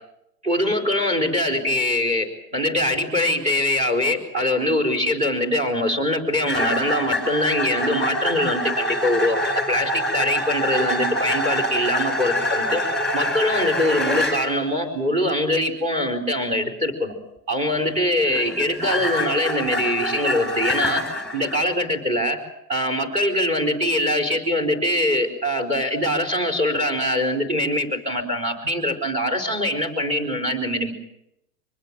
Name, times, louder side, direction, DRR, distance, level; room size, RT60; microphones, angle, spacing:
voice 1, 0.4-12.8 13.1-17.1 17.5-21.0 21.3-22.4 22.7-30.9, left 1 dB, 15° right, 3 dB, 4.6 m, -23 dB
sound 1, 6.5-14.4 17.8-21.6, equal, ahead, 6.2 m, -25 dB
24.5 x 20.5 x 7.6 m, 0.79 s
hypercardioid pair, 135°, 48 cm